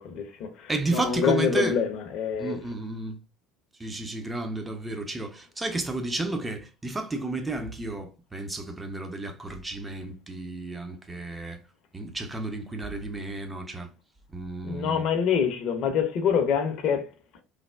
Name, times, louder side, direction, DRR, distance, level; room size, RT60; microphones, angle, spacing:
voice 1, 0.0-2.6 14.6-17.1, left 7 dB, 50° left, 0.6 m, -26 dB
voice 2, 0.7-1.8 2.4-3.2 3.8-11.6 11.9-13.9 14.3-15.0, right 2 dB, 15° right, 0.5 m, -32 dB
3.2 x 2.1 x 2.3 m
figure-of-eight pair, 65°, 0 cm